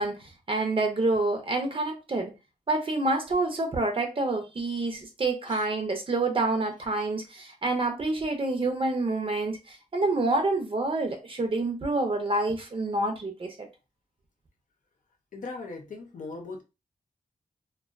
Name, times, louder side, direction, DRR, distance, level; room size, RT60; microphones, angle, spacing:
voice 1, 0.0-2.3 2.7-13.7, right 2 dB, 40° right, 0.6 m, -28 dB
voice 2, 15.3-16.6, left 3 dB, 70° left, 0.7 m, -39 dB
2.3 x 2.3 x 2.4 m
wide cardioid pair, 100°, 14 cm